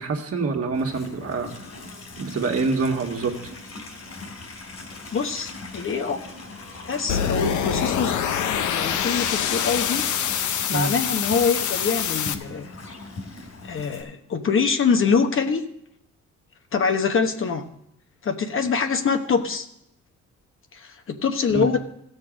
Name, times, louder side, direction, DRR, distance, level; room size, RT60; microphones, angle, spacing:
voice 1, 0.0-1.5 2.2-3.3 10.7-10.9 21.5-21.7, right 4 dB, 50° right, 2 dB, 1.7 m, -25 dB
Livestock farm animals working animals, 0.7-14.0, left 3 dB, 60° left, 3.3 m, -41 dB
voice 2, 5.1-6.2 6.5-6.6 6.9-10.1 10.7-12.7 13.6-15.6 16.7-17.7 18.2-19.7 20.7-21.9, left 5 dB, 45° left, 6 dB, 1.0 m, -24 dB
sound 1, 7.1-12.3, left 8 dB, 75° left, 0.8 m, -25 dB
15.5 x 6.6 x 5.0 m, 0.78 s
cardioid pair, 90°, 30 cm